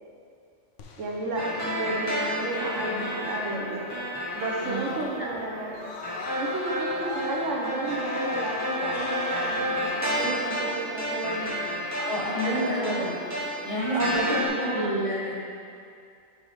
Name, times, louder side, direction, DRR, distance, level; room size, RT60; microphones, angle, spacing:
Screaming, 0.8-5.4 5.7-9.6, left 3 dB, 75° left, 1.0 m, -40 dB
voice 1, 1.0-3.9 4.3-5.8 6.4-11.6 12.4-13.1 13.9-14.9, right 2 dB, 75° right, -1 dB, 1.2 m, -32 dB
sound 1, 1.3-14.5, equal, 15° right, 1.3 m, -31 dB
voice 2, 4.6-5.3 12.0-13.1 13.6-15.3, equal, 30° left, -5 dB, 1.0 m, -29 dB
6.2 x 6.2 x 3.5 m, 2.4 s
omnidirectional pair, 1.3 m